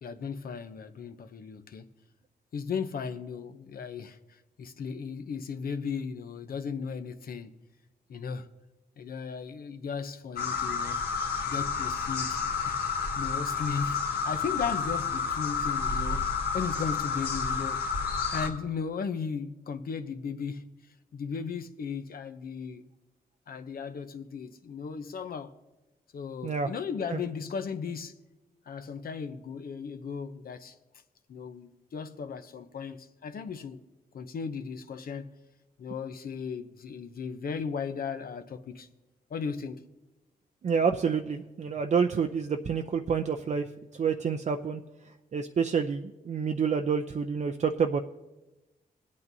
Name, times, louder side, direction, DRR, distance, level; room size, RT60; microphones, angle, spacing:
voice 1, 0.0-1.9 2.5-7.5 8.1-8.5 9.0-11.0 11.5-17.8 18.3-20.6 21.1-22.8 23.5-25.5 26.1-28.1 28.7-30.7 31.3-33.8 34.1-35.3 35.8-38.9 39.3-39.8, left 6 dB, 65° left, 0.7 m, -36 dB
Evening birds and cicadas, 10.4-18.5, left 5 dB, 85° left, 1.6 m, -30 dB
voice 2, 40.6-43.6 43.9-44.8 45.3-48.0, right 6 dB, 45° right, 0.5 m, -28 dB
24.0 x 8.5 x 2.7 m
cardioid pair, 70°, 16 cm